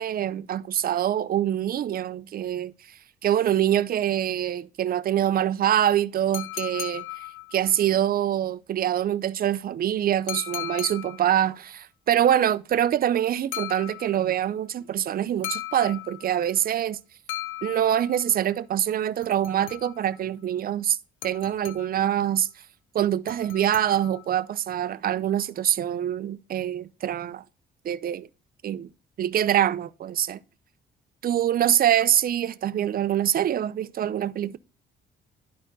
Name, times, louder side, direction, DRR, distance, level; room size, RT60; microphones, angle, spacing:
voice 1, 0.0-2.7 3.2-7.1 7.5-17.0 17.6-21.0 21.2-22.5 22.9-27.4 27.8-28.3 28.6-28.9 29.2-30.4 31.2-34.6, right 10 dB, 50° right, 0.5 m, -24 dB
sound 1, 6.3-7.8 10.3-11.4 13.5-14.4 15.4-16.5 17.3-18.3 19.2-20.2 21.2-22.1 23.3-24.4, left 14 dB, 80° left, 0.7 m, -37 dB
11.0 x 4.2 x 3.9 m
cardioid pair, 90°, 20 cm